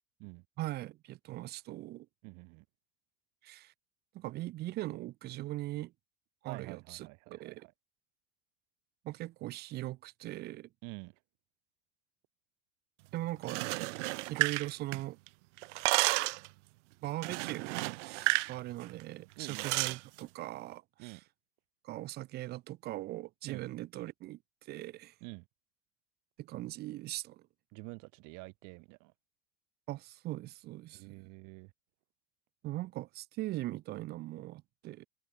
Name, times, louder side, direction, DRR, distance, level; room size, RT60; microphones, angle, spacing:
voice 1, 0.6-2.1 3.4-3.7 4.1-5.9 6.4-7.7 9.0-10.7 13.1-13.6 14.3-15.2 17.0-21.2 21.8-25.1 26.4-27.4 29.9-31.2 32.6-35.1, right 16 dB, 30° right, 0.5 m, -40 dB
voice 2, 2.2-2.6 6.5-7.7 10.8-11.2 19.4-20.0 21.0-21.2 23.5-23.6 25.2-25.5 27.7-29.1 30.9-31.7, right 30 dB, 50° right, 3.6 m, -48 dB
sound 1, 13.4-15.3 15.6-16.5 17.2-18.5 18.8-19.0 19.5-20.0, right 23 dB, 75° right, 0.8 m, -32 dB
supercardioid pair, 155°, 36 cm